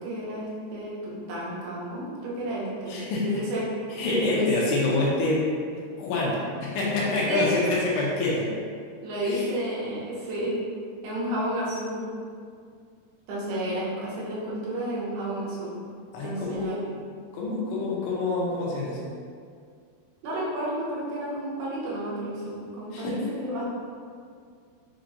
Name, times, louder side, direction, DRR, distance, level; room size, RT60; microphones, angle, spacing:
voice 1, 0.0-3.6 4.3-4.5 7.3-7.5 9.0-10.6 11.0-12.0 13.3-15.8 16.2-16.9 20.2-23.6, right 1 dB, 75° right, -7 dB, 3.0 m, -31 dB
voice 2, 2.9-3.4 3.9-8.6 9.2-9.5 16.1-16.9 17.3-19.1 22.9-23.2, left 2 dB, 80° left, -5 dB, 2.8 m, -27 dB
6.8 x 3.0 x 2.6 m, 2.2 s
omnidirectional pair, 4.8 m